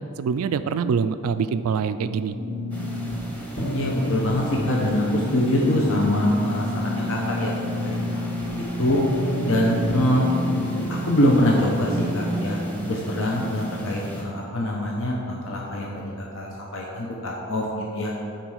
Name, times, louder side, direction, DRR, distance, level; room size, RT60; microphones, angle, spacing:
voice 1, 0.2-2.3, right 6 dB, 85° right, 12 dB, 0.3 m, -24 dB
sound 1, 2.3-10.8, left 2 dB, 40° left, 2.1 m, -30 dB
sound 2, 2.7-14.2, right 1 dB, 5° left, 1.0 m, -33 dB
voice 2, 3.7-7.5 7.8-8.0 8.5-9.0 9.4-10.3 10.9-12.6 12.8-18.1, equal, 60° left, -2 dB, 0.9 m, -24 dB
9.1 x 4.3 x 6.4 m, 2.8 s
head